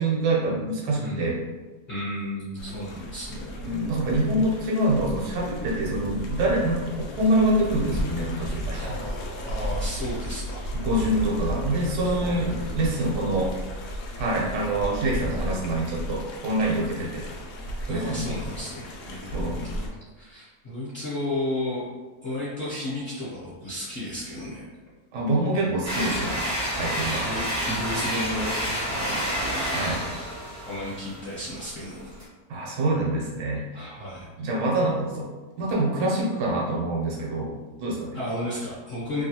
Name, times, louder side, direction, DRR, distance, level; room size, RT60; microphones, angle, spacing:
voice 1, 0.0-1.4 3.6-8.9 10.7-13.6 14.2-17.3 17.9-18.3 19.3-19.6 25.1-26.3 26.7-27.3 29.7-30.1 32.5-33.9 34.4-35.3 35.6-37.5 37.8-38.2, right 1 dB, 85° right, -3 dB, 1.3 m, -25 dB
voice 2, 1.0-1.3 1.9-3.6 8.8-10.6 12.0-12.4 14.2-14.6 16.9-17.2 17.9-19.8 20.1-21.8 22.2-24.6 25.6-25.8 26.8-29.6 30.6-32.1 33.7-34.3 38.1-39.2, left 1 dB, 50° left, -9 dB, 0.9 m, -33 dB
sound 1, 2.6-19.9, equal, 80° left, 0.6 m, -34 dB
sound 2, 25.8-32.2, equal, 20° right, 0.5 m, -29 dB
Wind instrument woodwind instrument, 27.3-30.8, left 3 dB, 70° right, 0.8 m, -45 dB
3.0 x 2.3 x 2.7 m, 1.3 s
omnidirectional pair, 1.7 m